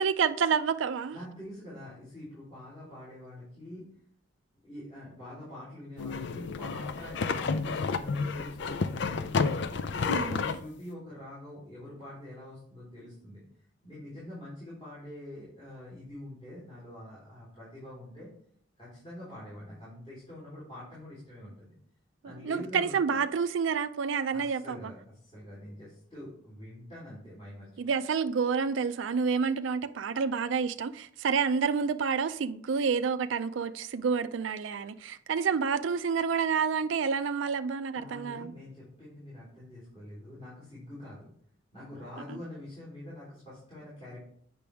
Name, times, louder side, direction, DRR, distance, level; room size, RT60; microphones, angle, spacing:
voice 1, 0.0-1.2 10.1-10.4 22.4-24.9 27.8-38.5 42.3-42.4, right 6 dB, 75° right, 0.4 m, -29 dB
voice 2, 1.1-3.9 4.6-13.4 13.8-18.3 18.8-21.8 22.2-23.2 24.3-27.9 37.9-41.3 41.7-44.2, left 1 dB, 30° left, 3.5 m, -45 dB
sound 1, 6.0-10.6, left 4 dB, 65° left, 0.5 m, -30 dB
8.5 x 5.9 x 3.5 m
head